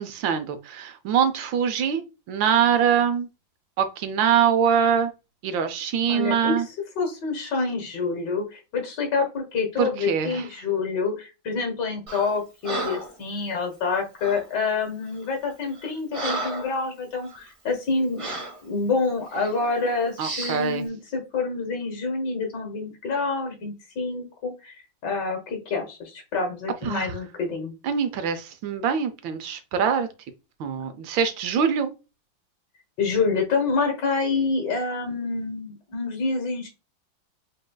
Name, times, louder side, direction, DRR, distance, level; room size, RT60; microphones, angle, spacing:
voice 1, 0.0-3.3 3.8-5.1 5.4-6.7 9.8-10.5 20.2-20.8 26.8-27.1 27.8-30.1 30.6-31.9, right 7 dB, 80° right, 1.4 m, -24 dB
voice 2, 6.1-6.6 7.0-24.7 25.0-27.7 33.0-36.7, left 4 dB, 65° left, 1.9 m, -27 dB
Breathing, 12.1-12.3 12.6-13.2 14.2-14.5 15.1-15.3 15.7-16.8 17.2-17.4 18.2-18.6 19.3-19.5 20.2-20.7, right 2 dB, 40° right, 0.4 m, -33 dB
5.2 x 3.2 x 2.3 m
omnidirectional pair, 2.1 m